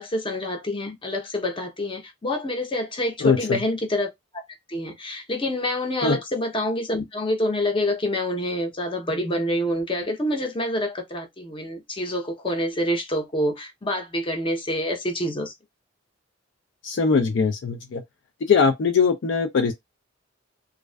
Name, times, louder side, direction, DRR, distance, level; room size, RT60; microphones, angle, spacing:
voice 1, 0.0-4.1 4.7-15.5, left 1 dB, 25° left, 0.7 m, -27 dB
voice 2, 3.2-3.6 6.0-6.2 16.8-18.0 18.5-19.7, left 5 dB, 65° left, 0.4 m, -21 dB
2.4 x 2.3 x 2.2 m
head